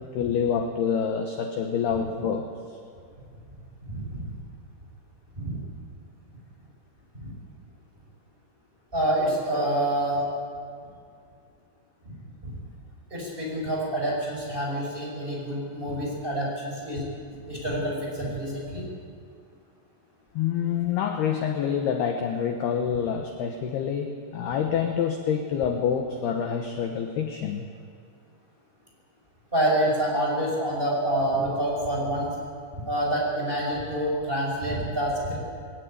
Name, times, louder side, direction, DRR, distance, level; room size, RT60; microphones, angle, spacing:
voice 1, 0.0-2.8 20.3-27.7, left 7 dB, 70° left, 4 dB, 2.7 m, -27 dB
voice 2, 3.9-4.3 5.4-5.6 7.2-7.3 8.9-10.3 12.4-12.6 13.1-17.1 17.5-18.9 29.5-32.3 32.8-35.4, right 1 dB, 10° right, -3 dB, 6.4 m, -27 dB
21.0 x 18.5 x 9.4 m, 2.3 s
omnidirectional pair, 5.8 m